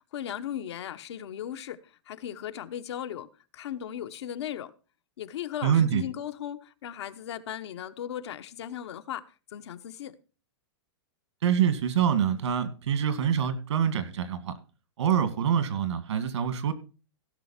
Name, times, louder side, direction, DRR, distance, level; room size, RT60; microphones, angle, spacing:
voice 1, 0.1-3.3 3.5-4.7 5.2-9.2 9.5-10.2, left 10 dB, 70° left, 1.1 m, -37 dB
voice 2, 5.6-6.0 11.4-14.5 15.0-16.7, right 8 dB, 80° right, 2.2 m, -25 dB
16.0 x 6.5 x 4.3 m
hypercardioid pair, 155°, 15 cm